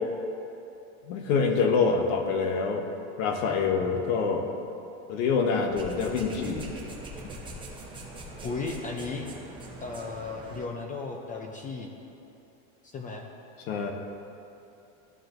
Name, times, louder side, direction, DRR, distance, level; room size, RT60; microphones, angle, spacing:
voice 1, 1.1-2.8 3.2-4.5 5.1-6.7 7.2-7.3 13.6-13.9, left 5 dB, 70° left, 3 dB, 1.2 m, -26 dB
sound 1, 5.7-10.6, right 1 dB, 10° right, 0.9 m, -42 dB
voice 2, 8.4-9.2 9.8-11.9 12.8-13.3, left 4 dB, 20° left, 2 dB, 0.4 m, -35 dB
13.5 x 4.5 x 2.6 m, 2.8 s
supercardioid pair, 140°, 41 cm